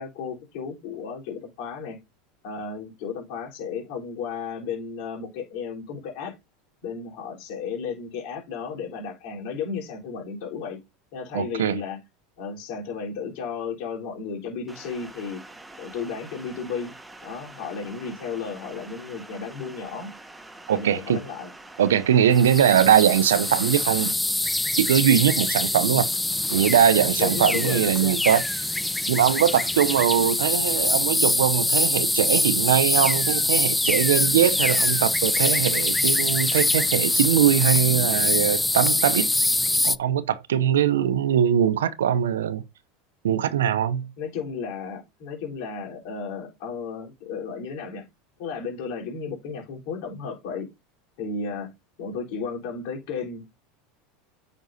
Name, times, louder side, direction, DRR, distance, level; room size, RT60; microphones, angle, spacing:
voice 1, 0.0-2.0 2.4-6.3 6.8-10.8 11.1-12.0 12.4-15.4 15.8-16.9 17.2-20.1 20.7-21.5 22.6-23.0 27.2-28.2 30.2-30.4 40.9-41.2 44.2-48.1 48.4-50.7 51.2-51.7 52.0-53.5, left 5 dB, 65° left, 3.8 m, -34 dB
voice 2, 11.3-11.8 20.7-21.2 21.8-24.1 24.8-26.1 26.5-28.7 29.1-39.3 39.8-42.6 43.2-44.1, right 9 dB, 85° right, 0.6 m, -21 dB
sound 1, 14.7-24.1, right 2 dB, 10° right, 1.1 m, -45 dB
sound 2, 22.3-40.0, left 2 dB, 5° left, 0.3 m, -24 dB
9.1 x 5.2 x 2.7 m
hypercardioid pair, 100°, 0 cm